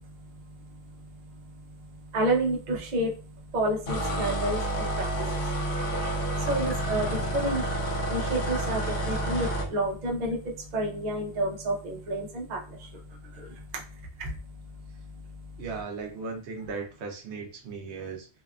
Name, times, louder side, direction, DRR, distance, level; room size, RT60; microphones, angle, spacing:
voice 1, 2.1-3.1 3.5-5.5 6.4-13.8 14.2-14.3, right 1 dB, 50° right, -1 dB, 0.6 m, -30 dB
sound 1, 3.9-9.7, right 1 dB, 60° left, 0.5 m, -29 dB
voice 2, 15.6-18.3, right 4 dB, 75° right, 3 dB, 0.9 m, -37 dB
2.7 x 2.3 x 2.2 m, 0.37 s
omnidirectional pair, 1.2 m